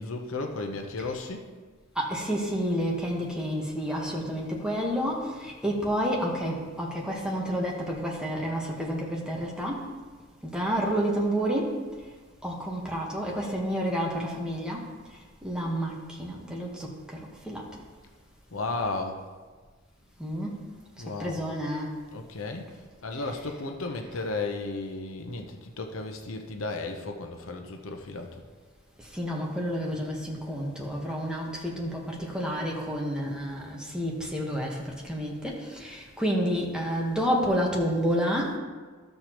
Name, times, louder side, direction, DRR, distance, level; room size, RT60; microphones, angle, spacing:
voice 1, 0.0-1.5 18.5-19.2 21.0-21.4 22.1-22.7 23.0-28.4, left 3 dB, 75° left, 4 dB, 0.8 m, -34 dB
voice 2, 1.9-9.9 10.4-11.8 12.4-14.9 15.4-17.7 20.2-20.5 21.2-22.0 29.1-38.6, equal, 5° right, -2 dB, 1.3 m, -30 dB
13.0 x 6.6 x 3.0 m, 1.4 s
head